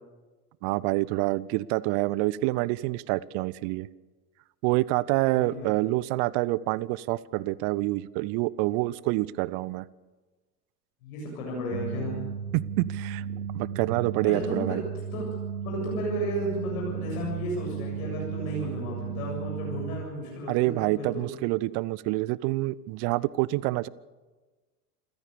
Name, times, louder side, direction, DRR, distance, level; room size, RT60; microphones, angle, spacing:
voice 1, 0.6-3.9 4.6-9.9 12.5-13.2 13.5-14.8 20.5-23.9, right 19 dB, 45° right, 23 dB, 0.7 m, -27 dB
voice 2, 5.3-5.7 11.0-12.2 14.2-14.8 15.1-15.2 15.6-21.3, equal, 65° left, -2 dB, 7.7 m, -33 dB
sound 1, 11.7-20.1, right 7 dB, 70° right, 1.1 m, -34 dB
27.5 x 15.5 x 6.9 m, 1.3 s
figure-of-eight pair, 75°, 47 cm